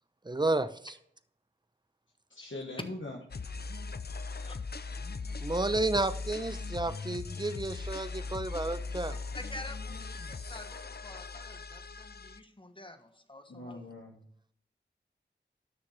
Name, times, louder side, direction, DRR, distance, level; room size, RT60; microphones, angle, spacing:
voice 1, 0.3-0.9 5.4-9.2, right 2 dB, 25° right, 0.7 m, -31 dB
voice 2, 2.3-3.2 13.5-14.2, left 2 dB, 85° left, 1.3 m, -41 dB
sound 1, 3.3-12.4, left 4 dB, 55° left, 0.5 m, -39 dB
voice 3, 9.1-13.8, left 1 dB, 25° left, 1.3 m, -48 dB
13.0 x 6.3 x 3.3 m
wide cardioid pair, 40°, 19 cm